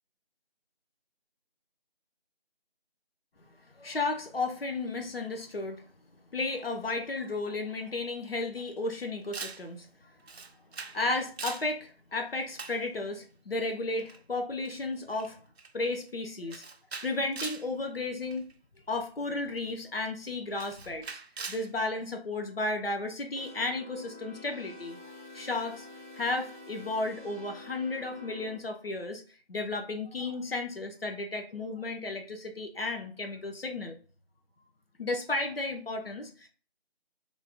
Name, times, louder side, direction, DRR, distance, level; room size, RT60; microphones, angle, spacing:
voice 1, 3.7-5.8 6.3-9.9 10.9-15.4 15.7-16.6 17.0-18.4 18.9-21.1 21.5-25.9 26.1-29.2 29.5-34.0 35.0-36.5, left 2 dB, 65° left, 4 dB, 0.6 m, -33 dB
Camera, 9.3-9.7 10.3-11.0 11.3-11.7 12.6-12.8 14.0-14.2 14.6-14.8 15.1-15.3 15.6-15.9 16.5-17.7 18.3-18.5 19.6-19.7 20.6-21.7, right 4 dB, 75° right, 0.5 m, -41 dB
sound 1, 23.4-28.6, left 2 dB, 50° left, 0.9 m, -48 dB
3.2 x 2.1 x 2.6 m, 0.40 s
figure-of-eight pair, 175°, 32 cm